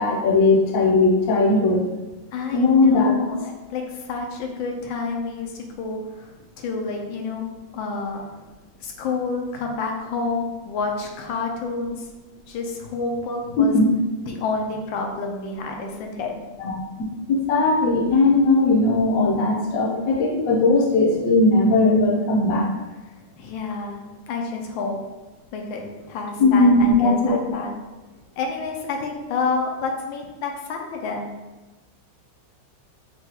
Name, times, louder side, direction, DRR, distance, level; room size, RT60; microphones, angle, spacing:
voice 1, 0.0-1.8 2.5-3.2 13.6-13.9 16.2-16.3 16.6-16.7 17.3-22.7 26.4-27.4, left 2 dB, 60° left, -2 dB, 0.9 m, -18 dB
voice 2, 2.3-7.4 7.7-8.2 8.8-12.1 12.5-13.8 14.3-16.3 23.4-24.0 24.3-25.0 25.5-27.7 28.4-31.3, left 4 dB, 80° left, 2 dB, 1.3 m, -29 dB
5.8 x 2.3 x 2.8 m, 1.2 s
omnidirectional pair, 2.1 m